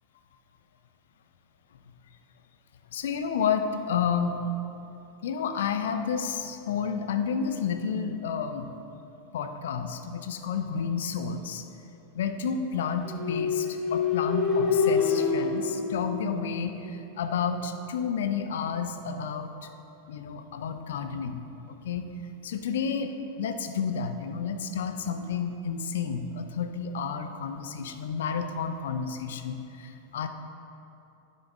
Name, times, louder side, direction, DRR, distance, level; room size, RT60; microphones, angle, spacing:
voice 1, 2.9-4.4 5.2-8.7 9.3-11.6 12.1-19.5 20.1-21.4 21.7-22.0 22.4-30.3, left 6 dB, 60° left, 8 dB, 0.5 m, -31 dB
sound 1, 13.1-16.9, left 5 dB, 25° left, 1.1 m, -26 dB
10.5 x 6.7 x 3.5 m, 2.9 s
figure-of-eight pair, 90°, 0 cm